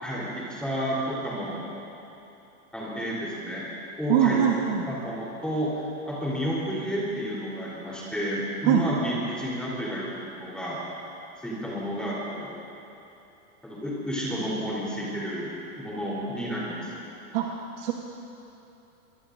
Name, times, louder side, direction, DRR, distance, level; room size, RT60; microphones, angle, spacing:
voice 1, 0.0-1.6 2.7-3.6 4.0-4.4 4.9-10.8 11.4-12.5 13.6-16.9, equal, ahead, -7 dB, 3.9 m, -31 dB
voice 2, 4.1-4.8 8.7-8.8 17.3-17.5 17.8-17.9, right 10 dB, 40° right, 0 dB, 1.3 m, -22 dB
23.0 x 23.0 x 2.7 m, 2.9 s
supercardioid pair, 160°, 44 cm